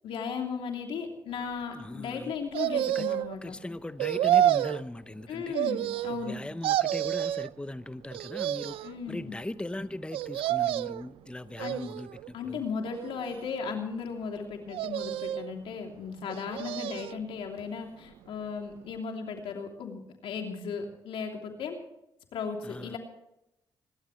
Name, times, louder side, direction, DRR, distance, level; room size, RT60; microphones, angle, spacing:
voice 1, 0.0-3.6 5.3-6.4 8.8-9.4 11.6-11.9 12.3-21.8 22.3-23.0, left 5 dB, 85° left, 3.0 m, -36 dB
voice 2, 1.8-2.3 2.9-3.0 3.4-5.5 6.2-8.8 9.1-12.1 12.5-12.6 22.6-23.0, left 1 dB, 10° left, 0.7 m, -39 dB
sound 1, 2.5-3.3 4.0-4.8 5.5-6.3 6.6-7.5 8.1-8.9 10.1-11.0 11.6-12.3 12.9-13.7 14.7-15.5 16.3-17.2 17.6-17.7, right 12 dB, 90° right, 0.4 m, -29 dB
26.0 x 12.5 x 3.2 m
supercardioid pair, 55°, 9 cm